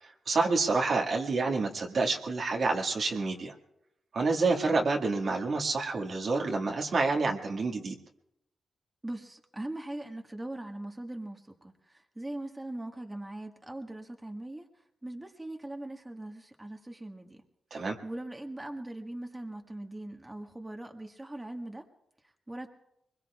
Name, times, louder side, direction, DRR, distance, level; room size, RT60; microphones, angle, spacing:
voice 1, 0.0-3.5 4.1-7.9 17.7-18.0, right 3 dB, 65° right, 0 dB, 1.9 m, -28 dB
voice 2, 9.0-14.7 15.0-17.4 17.7-21.8 22.2-22.7, right 1 dB, 20° right, 3 dB, 1.6 m, -41 dB
23.5 x 21.5 x 2.4 m, 0.82 s
supercardioid pair, 50°, 0 cm